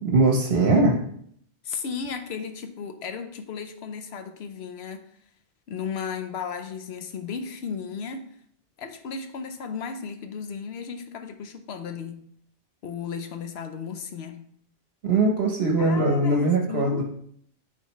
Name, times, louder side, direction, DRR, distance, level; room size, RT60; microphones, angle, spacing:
voice 1, 0.0-1.0 15.0-17.0, right 2 dB, 75° right, 1 dB, 1.2 m, -21 dB
voice 2, 1.6-5.0 5.7-8.4 8.8-12.2 12.8-14.4 15.8-17.0, left 6 dB, 85° left, 8 dB, 1.0 m, -35 dB
9.3 x 3.8 x 3.1 m, 0.65 s
omnidirectional pair, 1.0 m